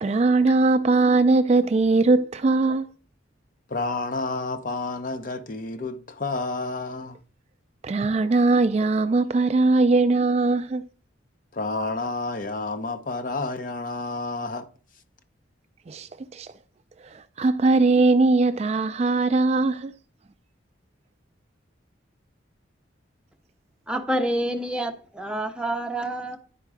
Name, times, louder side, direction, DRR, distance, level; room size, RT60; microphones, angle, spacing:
voice 1, 0.0-2.9 7.8-10.8 15.9-16.5 17.0-19.9, right 3 dB, 35° right, 0.3 m, -20 dB
voice 2, 3.7-7.2 11.5-14.7, left 3 dB, 45° left, 0.7 m, -30 dB
voice 3, 23.9-26.4, right 1 dB, 5° right, 0.8 m, -27 dB
9.9 x 4.6 x 4.7 m
head